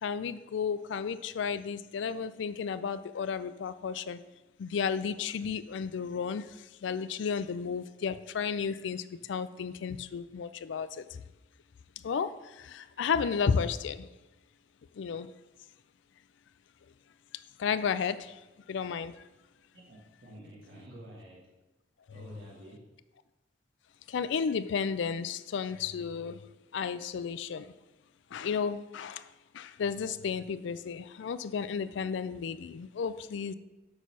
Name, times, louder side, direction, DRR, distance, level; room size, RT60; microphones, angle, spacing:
voice 1, 0.0-4.2 4.6-11.2 12.0-14.1 14.9-15.3 17.6-18.4 18.7-19.1 24.1-26.4 26.7-27.7 28.3-29.3 29.5-33.5, left 6 dB, 70° left, 0.4 m, -33 dB
voice 2, 19.7-21.5 22.1-22.9, right 1 dB, 65° right, 1.5 m, -49 dB
6.5 x 4.1 x 6.0 m
head